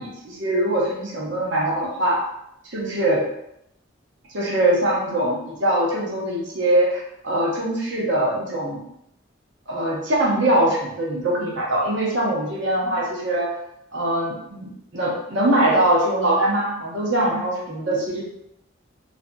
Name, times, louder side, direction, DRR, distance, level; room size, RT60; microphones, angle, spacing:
voice 1, 0.0-2.2 2.6-3.3 4.3-8.8 9.7-13.6 13.9-18.2, right 1 dB, 70° right, -4 dB, 0.8 m, -22 dB
2.5 x 2.5 x 2.2 m, 0.78 s
head